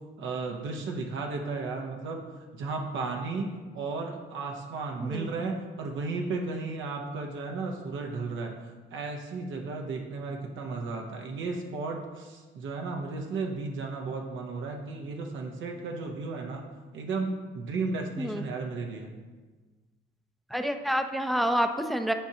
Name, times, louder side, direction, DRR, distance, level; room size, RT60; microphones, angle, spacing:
voice 1, 0.2-2.2 2.5-16.6 16.9-19.1, right 3 dB, 75° right, 1 dB, 0.8 m, -34 dB
voice 2, 20.5-22.1, equal, ahead, 7 dB, 0.5 m, -28 dB
10.5 x 4.6 x 2.8 m, 1.3 s
cardioid pair, 90°, 20 cm